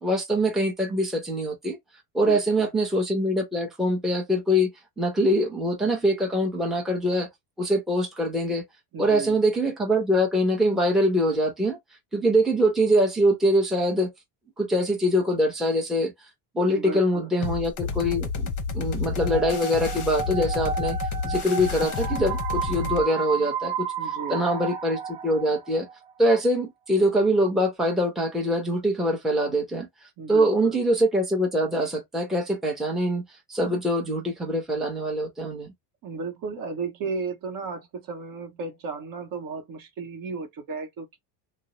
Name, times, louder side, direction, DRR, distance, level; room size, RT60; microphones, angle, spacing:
voice 1, 0.0-1.8 2.1-4.7 5.0-7.3 7.6-8.6 9.0-11.8 12.1-14.1 14.6-16.1 16.5-21.0 21.2-23.9 24.3-25.9 26.2-29.9 30.3-33.2 33.5-35.7, equal, ahead, 0.7 m, -23 dB
voice 2, 2.2-2.7 8.9-9.4 16.7-17.3 24.0-24.5 30.2-30.8 36.0-41.2, right 4 dB, 45° right, 0.8 m, -34 dB
sound 1, 17.4-23.0, left 5 dB, 40° left, 0.7 m, -30 dB
sound 2, 19.2-26.0, right 6 dB, 70° right, 1.0 m, -32 dB
2.5 x 2.0 x 2.9 m
cardioid pair, 120°, 48 cm